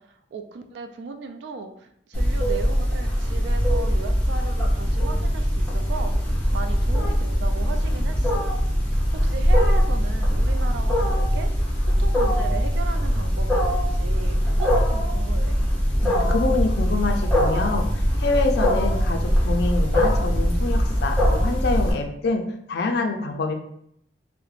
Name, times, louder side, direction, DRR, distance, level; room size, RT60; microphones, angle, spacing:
voice 1, 0.0-8.5 9.1-11.5 11.8-15.6, right 4 dB, 70° right, 6 dB, 0.3 m, -37 dB
Wild animals, 2.1-21.9, equal, 5° left, 0.6 m, -21 dB
voice 2, 16.0-22.4 22.7-23.5, left 3 dB, 60° left, 4 dB, 0.3 m, -26 dB
2.3 x 2.0 x 3.1 m, 0.72 s
head